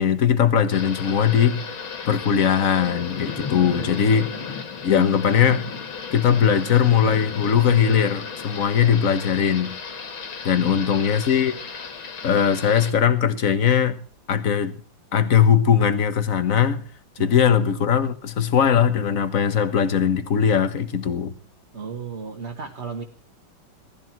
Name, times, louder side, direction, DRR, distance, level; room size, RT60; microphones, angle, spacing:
voice 1, 0.0-1.6 2.1-4.3 4.8-5.7 6.1-9.7 10.4-11.5 12.2-14.0 14.3-14.7 15.1-16.8 17.2-21.3, left 8 dB, 45° left, 1.5 m, -20 dB
Thunder / Rain, 0.7-12.9, left 6 dB, 80° left, 2.7 m, -34 dB
voice 2, 3.6-4.5 4.9-5.1 10.5-11.0 17.2-17.4 21.7-23.0, right 5 dB, 35° right, 1.6 m, -36 dB
18.5 x 14.0 x 4.5 m
omnidirectional pair, 2.2 m